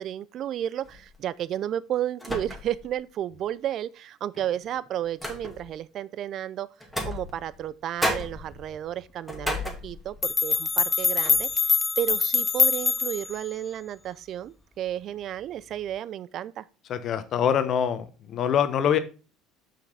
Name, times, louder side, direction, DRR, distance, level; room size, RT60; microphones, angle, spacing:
voice 1, 0.0-6.7 7.0-11.5 12.0-16.7, right 11 dB, 55° right, 0.4 m, -32 dB
sound 1, 0.8-1.2 2.2-2.9 3.3-3.4 4.3-5.8 6.8-7.7 8.0-10.3 10.8-10.9 11.2-11.6, left 1 dB, 5° left, 2.4 m, -34 dB
sound 2, 9.9-10.0 10.2-13.4, left 4 dB, 25° left, 0.8 m, -24 dB
voice 2, 16.9-19.0, left 8 dB, 50° left, 1.0 m, -24 dB
5.9 x 5.8 x 4.0 m
hypercardioid pair, 70°, 0 cm